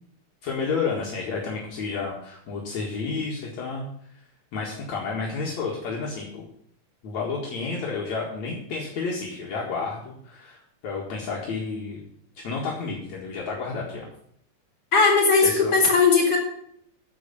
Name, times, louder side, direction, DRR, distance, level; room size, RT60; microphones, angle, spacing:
voice 1, 0.4-3.9 4.5-6.4 7.0-12.0 12.4-14.1 15.4-15.7, left 4 dB, 65° left, -3 dB, 3.0 m, -31 dB
voice 2, 14.9-16.4, left 4 dB, 30° left, -2 dB, 4.2 m, -18 dB
14.5 x 4.9 x 6.9 m, 0.70 s
omnidirectional pair, 3.5 m